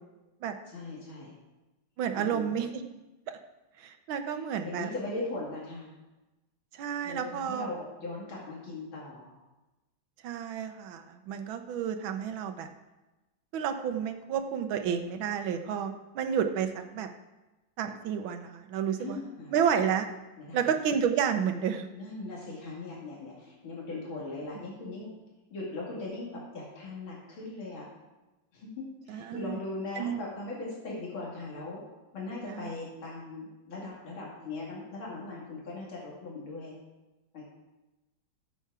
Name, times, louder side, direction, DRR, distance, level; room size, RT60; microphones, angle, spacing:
voice 1, 0.6-1.3 2.1-2.5 4.3-5.9 7.0-9.3 19.0-19.6 20.4-20.6 21.9-25.1 25.5-27.9 28.5-31.8 32.1-36.8 37.3-37.4, left 2 dB, 85° left, -5 dB, 3.0 m, -39 dB
voice 2, 2.0-2.8 3.8-4.9 6.7-7.7 10.2-12.7 13.5-17.1 17.8-19.2 19.5-20.1 20.5-21.9 29.1-29.6 30.0-30.2 32.4-32.7, right 8 dB, 85° right, 7 dB, 1.6 m, -30 dB
11.0 x 7.2 x 4.8 m, 1.1 s
omnidirectional pair, 2.2 m